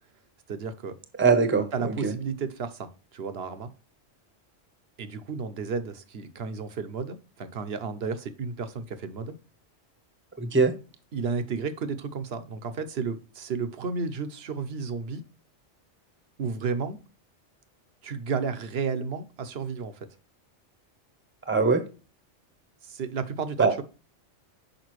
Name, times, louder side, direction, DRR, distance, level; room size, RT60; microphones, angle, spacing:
voice 1, 0.5-0.9 1.7-3.7 5.0-9.4 11.1-15.2 16.4-17.0 18.0-20.0 22.8-23.8, right 5 dB, 60° right, 10 dB, 1.0 m, -32 dB
voice 2, 1.2-2.1 10.4-10.7 21.5-21.8 23.6-23.7, right 4 dB, 10° right, 9 dB, 0.8 m, -22 dB
6.6 x 5.2 x 3.0 m, 0.33 s
omnidirectional pair, 1.2 m